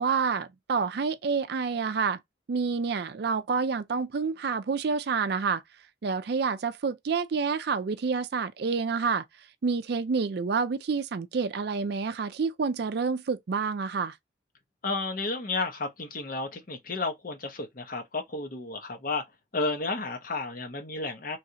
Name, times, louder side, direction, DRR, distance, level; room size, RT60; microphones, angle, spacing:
voice 1, 0.0-2.2 2.5-5.6 6.0-9.2 9.6-14.2, right 5 dB, 60° right, 0.4 m, -28 dB
voice 2, 14.8-19.2 19.5-21.4, left 3 dB, 50° left, 0.9 m, -32 dB
3.1 x 2.6 x 2.8 m
head